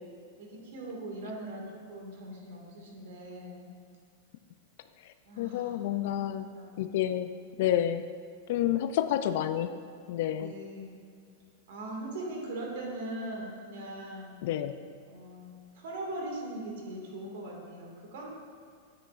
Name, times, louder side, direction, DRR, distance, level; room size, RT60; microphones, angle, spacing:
voice 1, 0.4-3.7 5.3-6.8 10.3-11.0 11.7-14.4 15.1-15.5 15.7-18.3, right 1 dB, 70° right, -1 dB, 2.0 m, -40 dB
voice 2, 5.4-6.5 6.8-7.3 7.6-8.0 8.5-9.7 10.1-10.5 14.4-14.7, left 11 dB, 65° left, 10 dB, 0.3 m, -29 dB
9.9 x 8.1 x 2.5 m, 2.2 s
hypercardioid pair, 130°, 0 cm